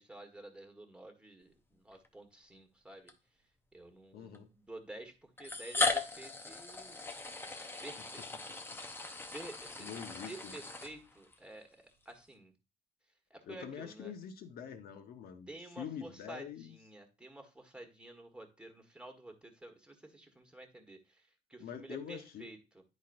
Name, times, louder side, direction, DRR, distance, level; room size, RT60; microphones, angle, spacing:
voice 1, 0.0-3.1 3.7-7.0 7.8-8.2 9.3-12.5 13.3-14.1 15.5-22.8, right 1 dB, 5° right, 1.5 m, -51 dB
sound 1, 1.9-2.1 3.1-3.2 4.3-4.4 5.4-11.4, left 3 dB, 15° left, 0.7 m, -38 dB
voice 2, 4.1-4.5 8.2-8.4 9.8-10.6 13.4-15.5 15.8-16.8 21.6-22.5, left 8 dB, 65° left, 1.1 m, -45 dB
10.0 x 4.3 x 2.6 m
cardioid pair, 110°, 17 cm